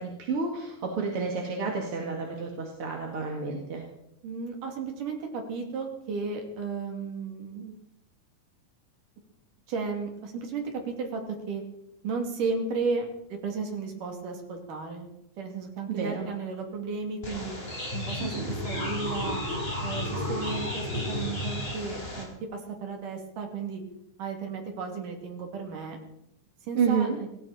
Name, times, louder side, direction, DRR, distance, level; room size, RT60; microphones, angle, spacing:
voice 1, 0.0-3.8 15.9-16.2 26.7-27.2, right 5 dB, 45° right, 1 dB, 2.6 m, -30 dB
voice 2, 4.2-7.7 9.7-11.2 11.5-11.6 12.0-15.1 15.4-17.5 17.9-19.4 19.8-23.8 24.2-26.0 26.6-27.3, right 4 dB, 70° right, 3 dB, 4.2 m, -34 dB
sound 1, 17.2-22.2, left 1 dB, 15° left, 4.9 m, -32 dB
18.0 x 17.5 x 4.2 m, 0.82 s
omnidirectional pair, 3.9 m